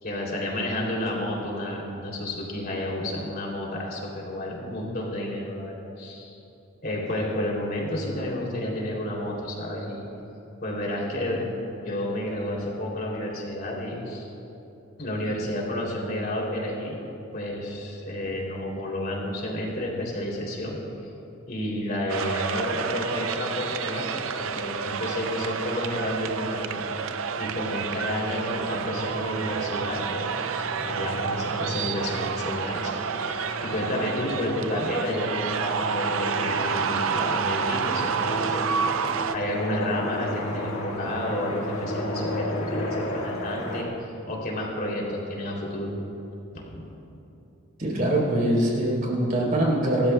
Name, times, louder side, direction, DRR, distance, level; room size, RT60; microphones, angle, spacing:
voice 1, 0.0-6.4 6.8-10.1 10.6-11.5 11.8-14.3 15.0-17.0 17.3-20.8 21.5-26.9 27.4-32.9 33.2-45.9 46.6-46.8, left 1 dB, 50° left, -3 dB, 3.0 m, -31 dB
sound 1, 22.1-39.4, right 6 dB, 80° right, 0.5 m, -29 dB
sound 2, 24.2-43.8, left 1 dB, 90° left, 1.7 m, -35 dB
voice 2, 47.8-50.1, right 1 dB, 45° right, -3 dB, 3.6 m, -23 dB
26.5 x 13.0 x 2.3 m, 2.9 s
head